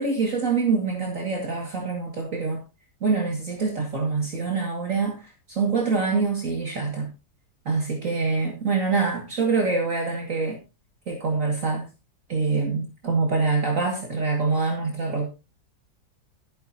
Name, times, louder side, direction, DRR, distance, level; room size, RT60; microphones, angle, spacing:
voice 1, 0.0-2.6 3.0-7.1 7.7-10.6 11.1-11.9 12.3-15.3, right 4 dB, 50° right, 2.7 m, -25 dB
13.5 x 11.5 x 2.9 m
omnidirectional pair, 1.8 m